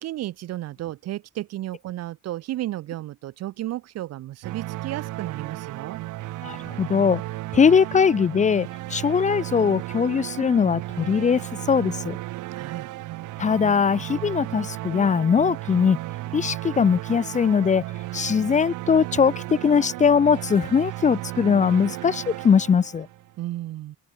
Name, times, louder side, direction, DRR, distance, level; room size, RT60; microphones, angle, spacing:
voice 1, 0.0-6.0 12.5-12.9 23.4-24.0, right 14 dB, 55° right, 0.8 m, -33 dB
sound 1, 4.4-23.3, right 17 dB, 85° right, 2.9 m, -34 dB
voice 2, 6.4-7.2 7.5-12.2 13.4-16.0 16.3-17.8 18.1-23.1, left 6 dB, 25° left, 0.7 m, -21 dB
cardioid pair, 155°, 30 cm